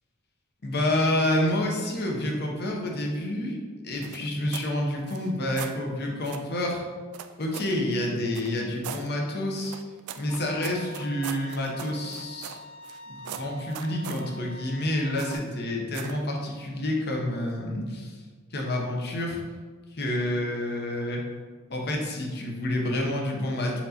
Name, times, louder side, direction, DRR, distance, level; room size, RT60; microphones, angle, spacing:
voice 1, 0.6-3.6 3.8-6.8 7.4-9.7 10.2-12.6 13.1-18.2 18.5-19.4 19.9-21.3 21.7-23.8, left 1 dB, 50° left, 0 dB, 0.7 m, -28 dB
sound 1, 4.0-4.7 5.0-5.8 6.2-6.5 7.1-7.8 8.3-9.1 9.6-13.0 13.2-14.3 15.2-15.5 15.9-16.2, right 9 dB, 85° right, 0.3 m, -40 dB
Bowed string instrument, 10.3-15.4, left 1 dB, 85° left, 0.3 m, -45 dB
4.4 x 3.9 x 2.8 m, 1.5 s
head